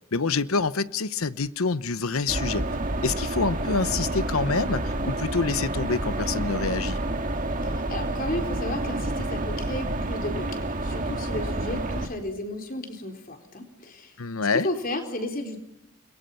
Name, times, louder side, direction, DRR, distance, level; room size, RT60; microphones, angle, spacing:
voice 1, 0.1-2.7 3.0-7.0 14.2-14.7, left 4 dB, 80° left, 15 dB, 0.9 m, -26 dB
sound 1, 2.3-12.1, right 1 dB, 40° right, 2.0 m, -29 dB
voice 2, 7.6-14.2 14.5-15.6, left 1 dB, 40° left, 5 dB, 4.2 m, -33 dB
30.0 x 22.5 x 5.8 m, 0.78 s
head